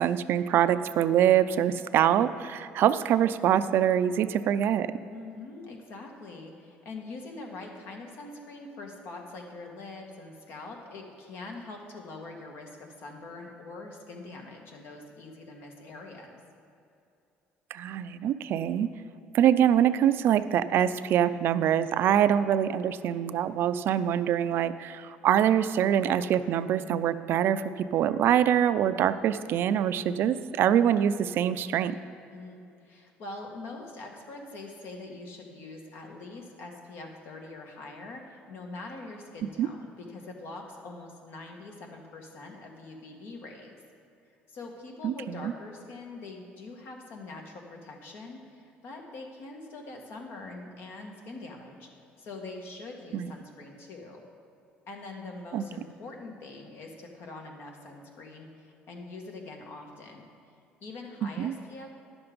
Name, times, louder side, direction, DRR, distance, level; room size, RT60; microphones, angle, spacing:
voice 1, 0.0-4.9 17.7-18.9 19.3-32.0 39.6-39.7 45.0-45.5 53.1-53.3 55.5-55.6 61.4-61.5, right 10 dB, 60° right, 13 dB, 0.4 m, -24 dB
voice 2, 5.0-16.4 32.3-43.8 44.5-51.9 52.2-54.2 54.9-60.2 60.8-61.9, left 3 dB, 65° left, 2 dB, 1.6 m, -43 dB
11.0 x 7.1 x 5.1 m, 2.6 s
cardioid pair, 105°, 4 cm